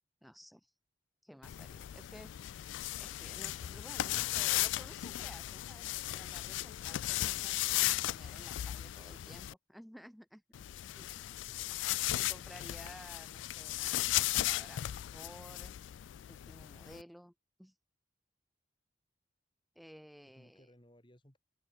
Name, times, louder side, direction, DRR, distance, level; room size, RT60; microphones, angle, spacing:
voice 1, 0.2-0.7 1.2-2.3 3.0-10.4 10.9-11.2 12.1-15.8 16.3-17.3 17.6-17.7 19.7-20.6, equal, ahead, 1.4 m, -54 dB
sound 1, 1.4-9.5 10.5-17.0, left 15 dB, 85° left, 0.3 m, -36 dB
voice 2, 20.2-21.4, equal, 25° left, 5.4 m, -63 dB
head